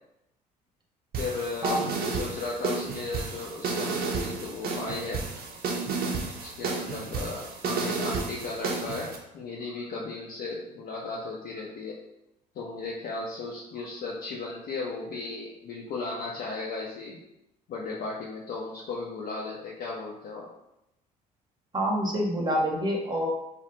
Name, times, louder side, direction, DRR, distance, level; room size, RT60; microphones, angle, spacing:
sound 1, 1.1-9.2, right 4 dB, 50° right, 0.6 m, -32 dB
voice 1, 1.2-5.2 6.4-12.0 12.5-17.2 17.7-20.5, left 3 dB, 50° left, -3 dB, 0.5 m, -36 dB
voice 2, 21.7-23.3, equal, 20° right, -1 dB, 0.8 m, -27 dB
2.4 x 2.1 x 2.9 m, 0.86 s
hypercardioid pair, 60°, 20 cm